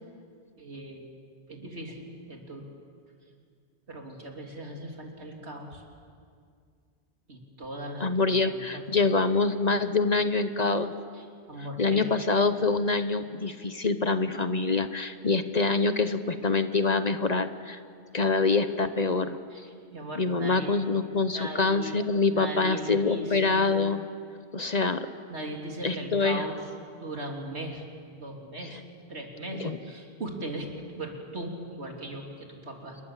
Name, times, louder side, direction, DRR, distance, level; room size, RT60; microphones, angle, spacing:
voice 1, 0.6-1.0 1.5-2.6 3.9-5.8 7.3-8.8 11.1-12.1 19.5-20.8 21.2-22.0 22.3-23.6 25.3-26.6 26.9-27.9 28.2-28.8 29.1-30.7 31.0-33.0, right 1 dB, 80° right, 1 dB, 3.4 m, -39 dB
voice 2, 8.0-10.9 11.8-17.8 18.1-19.4 20.2-24.0 24.5-25.1 25.8-26.4 28.7-28.8 29.5-29.8, left 4 dB, 40° left, 10 dB, 0.9 m, -25 dB
27.5 x 21.5 x 7.4 m, 2.2 s
omnidirectional pair, 1.1 m